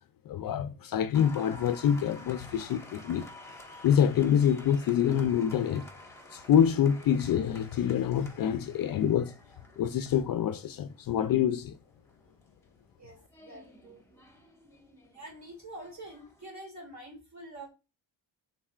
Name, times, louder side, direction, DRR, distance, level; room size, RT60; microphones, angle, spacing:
voice 1, 0.3-3.3 3.8-5.9 6.3-9.3 9.8-11.8, left 9 dB, 50° left, 0.5 m, -26 dB
Applause, 1.1-16.5, left 1 dB, 5° left, 1.5 m, -51 dB
voice 2, 13.0-14.0 15.1-17.7, right 1 dB, 35° right, 2.7 m, -46 dB
5.3 x 4.0 x 2.4 m
cardioid pair, 85°, 46 cm